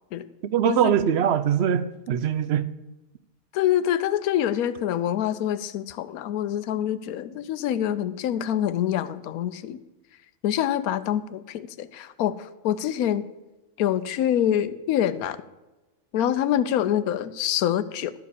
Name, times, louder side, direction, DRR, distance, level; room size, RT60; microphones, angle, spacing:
voice 1, 0.4-2.7, right 9 dB, 60° right, 14 dB, 0.7 m, -22 dB
voice 2, 3.5-9.8 10.4-13.3 13.8-15.4 16.1-18.1, left 11 dB, 90° left, 14 dB, 1.1 m, -25 dB
12.0 x 4.9 x 8.2 m, 1.1 s
omnidirectional pair, 1.5 m